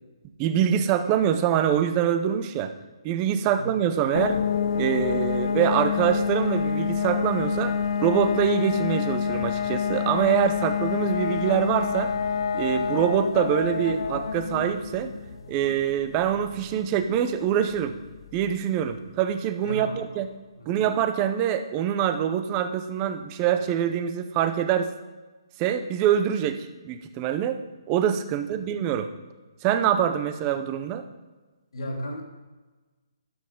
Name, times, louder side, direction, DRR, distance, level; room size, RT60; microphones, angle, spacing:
voice 1, 0.4-2.7 3.0-4.4 4.7-7.8 8.0-12.1 12.5-15.2 15.5-18.0 18.3-20.3 20.7-24.9 25.6-29.1 29.6-31.1, right 9 dB, 20° right, 9 dB, 0.6 m, -25 dB
sound 1, 4.1-18.7, left 7 dB, 60° left, 0.5 m, -28 dB
voice 2, 19.6-20.2 20.6-20.9 28.3-28.6 31.7-32.2, equal, 80° left, 0 dB, 3.2 m, -36 dB
12.5 x 7.7 x 3.7 m, 1.3 s
hypercardioid pair, 165°, 3 cm